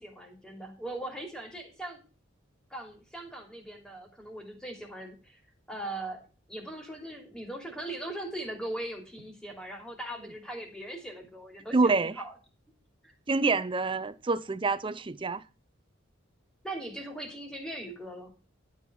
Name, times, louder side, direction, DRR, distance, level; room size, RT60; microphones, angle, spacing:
voice 1, 0.0-2.0 2.7-5.4 5.7-6.2 6.5-12.3 13.0-13.1 16.6-18.3, right 1 dB, 5° left, 3.0 m, -40 dB
voice 2, 11.7-12.1 13.3-15.4, right 3 dB, 25° right, 0.5 m, -26 dB
12.0 x 5.5 x 6.1 m
head